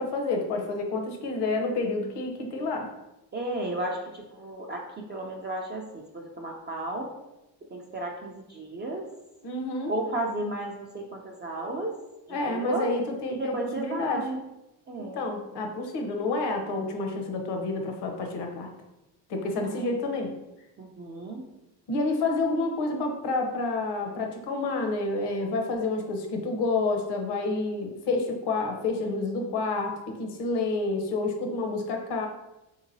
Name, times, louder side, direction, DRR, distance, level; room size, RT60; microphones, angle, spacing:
voice 1, 0.0-2.9 9.4-9.9 12.3-14.2 15.0-18.7 19.3-20.3 21.9-32.3, left 3 dB, 55° left, 3 dB, 0.8 m, -29 dB
voice 2, 3.3-7.1 7.7-9.1 9.9-12.0 12.3-12.9 13.3-14.4 14.9-15.2 19.4-20.1 20.8-21.5, right 1 dB, 25° right, -1 dB, 0.3 m, -34 dB
3.7 x 2.9 x 2.6 m, 0.95 s
supercardioid pair, 80°, 48 cm